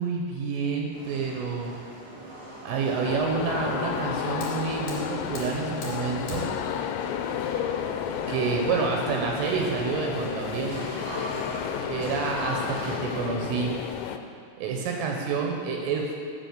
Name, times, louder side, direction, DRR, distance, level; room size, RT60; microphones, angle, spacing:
voice 1, 0.0-1.7 2.6-6.4 8.3-10.8 11.9-13.7 14.6-16.1, right 5 dB, 80° right, 0 dB, 3.1 m, -28 dB
sound 1, 0.9-13.2, right 1 dB, 40° right, 1.4 m, -42 dB
sound 2, 3.0-14.2, left 8 dB, 90° left, 3.2 m, -32 dB
Fire, 3.8-9.7, left 2 dB, 45° left, 3.3 m, -44 dB
9.2 x 5.0 x 6.5 m, 2.4 s
omnidirectional pair, 5.9 m